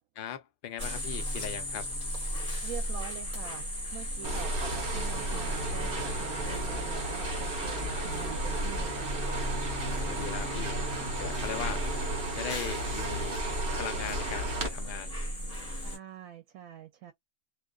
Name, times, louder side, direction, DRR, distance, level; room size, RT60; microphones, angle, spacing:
voice 1, 0.1-1.9 7.9-8.1 9.8-10.9 11.2-11.9 12.3-13.4 13.7-15.2, left 9 dB, 60° left, 0.6 m, -39 dB
sound 1, 0.8-16.0, equal, 30° left, 1.2 m, -36 dB
voice 2, 2.6-3.6 3.9-9.2 15.8-17.1, right 10 dB, 80° right, 1.0 m, -44 dB
sound 2, 4.2-14.7, right 2 dB, 45° right, 0.9 m, -34 dB
2.4 x 2.3 x 2.3 m
omnidirectional pair, 1.4 m